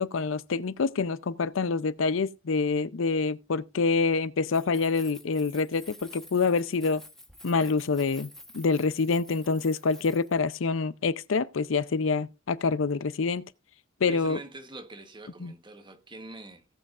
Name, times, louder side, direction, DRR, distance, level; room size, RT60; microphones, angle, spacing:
voice 1, 0.0-7.0 7.4-13.4 14.0-14.4 15.4-15.5, left 4 dB, 75° left, 0.6 m, -26 dB
Keys jangling, 4.5-10.5, left 1 dB, ahead, 1.1 m, -50 dB
voice 2, 14.0-16.6, right 2 dB, 25° right, 1.1 m, -44 dB
18.0 x 7.7 x 2.5 m
head